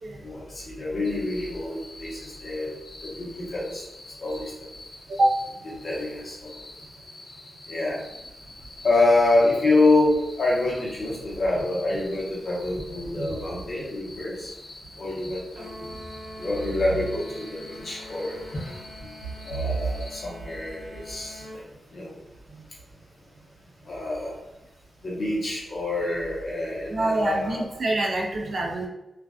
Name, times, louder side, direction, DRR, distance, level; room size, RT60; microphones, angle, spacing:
voice 1, 0.2-2.7 3.0-3.8 4.2-4.7 5.8-6.5 7.7-8.0 8.8-14.5 15.0-15.8 16.4-19.1 19.4-21.6 21.9-22.1 23.8-24.4 25.0-27.6, left 2 dB, 45° left, -6 dB, 0.9 m, -26 dB
sound 1, 1.0-20.2, left 2 dB, 80° left, 0.8 m, -47 dB
sound 2, 15.6-21.6, left 1 dB, 75° right, 0.9 m, -44 dB
voice 2, 26.9-28.9, right 1 dB, 45° right, -1 dB, 0.4 m, -25 dB
2.5 x 2.3 x 2.3 m, 0.93 s
wide cardioid pair, 150°, 0 cm